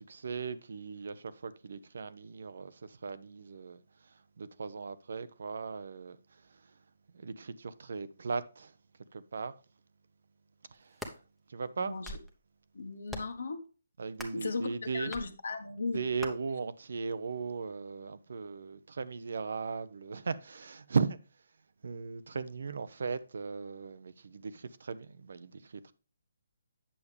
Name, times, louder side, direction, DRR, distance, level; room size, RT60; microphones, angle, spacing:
voice 1, 0.0-6.6 7.1-8.7 9.1-9.5 10.7-11.2 11.5-12.0 14.0-15.1 15.9-21.2 21.8-25.9, right 5 dB, 65° right, 0.7 m, -37 dB
sound 1, 10.7-11.2 11.8-12.3 13.1-13.4 14.1-14.5 15.1-15.3 16.2-16.3, equal, ahead, 1.0 m, -43 dB
voice 2, 11.8-12.2 12.7-13.6 14.3-16.0, left 4 dB, 70° left, 1.3 m, -37 dB
8.6 x 6.9 x 3.3 m
figure-of-eight pair, 145°, 0 cm